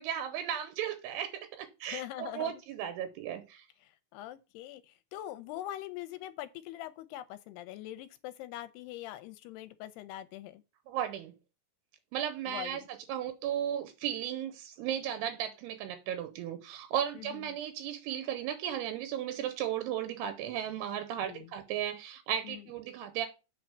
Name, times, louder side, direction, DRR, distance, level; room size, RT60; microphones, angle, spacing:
voice 1, 0.0-3.7 10.9-11.3 12.1-23.3, right 10 dB, 80° right, 2.7 m, -35 dB
voice 2, 1.9-2.5 3.8-10.6 12.5-12.9 17.2-17.3 21.2-21.5 22.4-22.6, left 13 dB, 80° left, 2.5 m, -43 dB
7.9 x 4.3 x 7.0 m
omnidirectional pair, 4.9 m